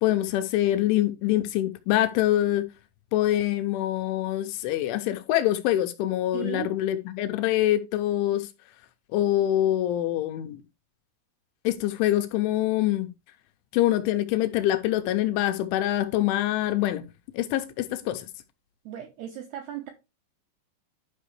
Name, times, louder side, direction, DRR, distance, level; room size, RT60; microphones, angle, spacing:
voice 1, 0.0-2.7 3.1-8.5 9.1-10.6 11.6-13.1 13.7-17.0 17.3-18.3, left 13 dB, 80° left, 2.9 m, -25 dB
voice 2, 6.3-6.8 18.9-19.9, right 10 dB, 80° right, 2.3 m, -36 dB
12.0 x 5.1 x 3.2 m
omnidirectional pair, 5.7 m